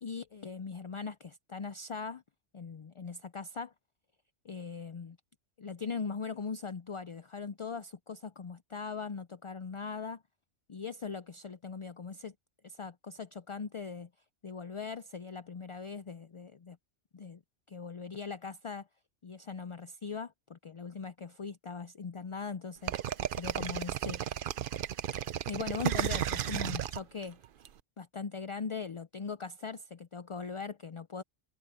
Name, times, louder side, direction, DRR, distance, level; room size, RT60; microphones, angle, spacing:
voice 1, 0.0-2.2 2.5-3.7 4.4-5.2 5.6-10.2 10.7-12.3 12.6-14.1 14.4-16.8 17.1-17.4 17.7-18.9 19.2-24.2 25.5-27.4 28.0-31.2, left 5 dB, 50° left, 0.4 m, -40 dB
sound 1, 22.9-27.7, right 10 dB, 55° right, 0.7 m, -33 dB
omnidirectional pair, 1.2 m